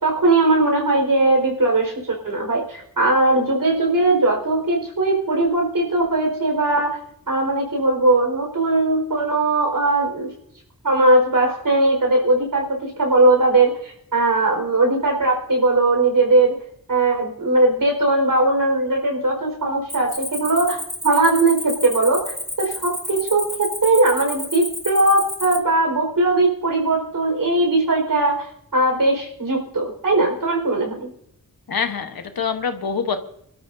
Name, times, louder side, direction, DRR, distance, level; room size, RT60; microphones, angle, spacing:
voice 1, 0.0-7.0 7.3-10.3 10.8-16.6 16.9-28.5 28.7-31.1, right 2 dB, 70° right, 1 dB, 4.9 m, -19 dB
Cricket, 19.9-25.6, left 1 dB, 5° left, 1.6 m, -31 dB
voice 2, 31.7-33.2, left 6 dB, 85° left, 7 dB, 1.3 m, -25 dB
27.0 x 13.0 x 2.7 m, 0.72 s
wide cardioid pair, 90°, 35 cm